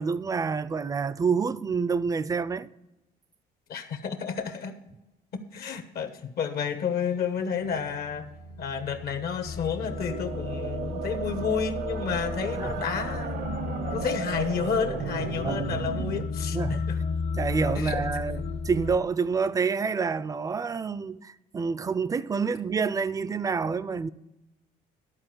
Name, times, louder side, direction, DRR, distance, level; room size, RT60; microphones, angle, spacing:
voice 1, 0.0-2.7 12.6-12.8 15.4-15.9 16.5-16.9 17.4-24.1, right 5 dB, 20° right, 0.3 m, -28 dB
voice 2, 3.7-4.8 5.3-8.3 8.6-13.5 13.9-17.0 17.7-18.0, left 7 dB, 65° left, 1.0 m, -31 dB
sound 1, 7.4-14.3 14.6-15.0 15.4-15.5, equal, 90° left, 1.3 m, -51 dB
sound 2, 9.4-19.0, left 5 dB, 40° left, 0.6 m, -34 dB
sound 3, 9.7-16.2, right 8 dB, 70° right, 0.7 m, -35 dB
11.5 x 4.2 x 7.7 m
cardioid pair, 110°, 17 cm